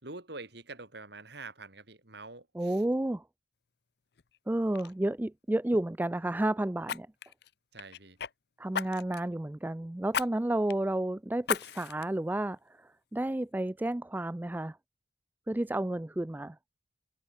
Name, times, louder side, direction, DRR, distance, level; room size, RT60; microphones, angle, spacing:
voice 1, 0.0-2.8 7.7-8.2, right 3 dB, 55° right, 3.8 m, -46 dB
voice 2, 2.5-3.2 4.5-7.1 8.6-14.8 15.5-16.6, right 1 dB, 10° right, 0.3 m, -31 dB
Fire, 4.2-4.4 4.7-4.9 6.8-8.3 8.7-9.3 10.1-10.3 10.7-10.8 11.4-12.1 12.6-12.7, left 7 dB, 55° left, 0.6 m, -35 dB
head